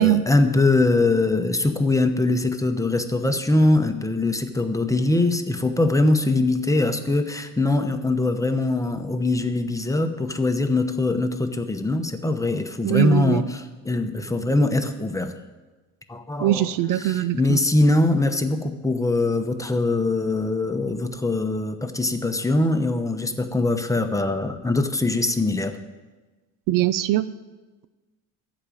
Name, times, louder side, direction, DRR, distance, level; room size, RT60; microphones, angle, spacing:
voice 1, 0.0-15.3 16.1-16.7 17.0-25.8, left 2 dB, 10° left, 6 dB, 1.0 m, -22 dB
voice 2, 12.8-13.4 16.4-17.6 26.7-27.2, right 13 dB, 65° right, 15 dB, 0.5 m, -21 dB
14.0 x 5.1 x 9.2 m, 1.2 s
cardioid pair, 95°, 35 cm